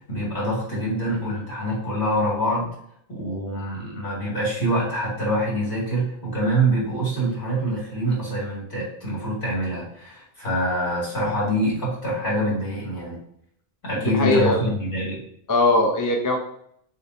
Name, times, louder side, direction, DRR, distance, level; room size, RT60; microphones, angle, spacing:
voice 1, 0.1-2.7 3.1-13.2 13.8-15.2, right 1 dB, 55° left, -5 dB, 2.2 m, -25 dB
voice 2, 14.0-14.7 15.5-16.4, left 2 dB, 25° left, 2 dB, 0.5 m, -20 dB
6.6 x 2.6 x 2.6 m, 0.68 s
omnidirectional pair, 1.1 m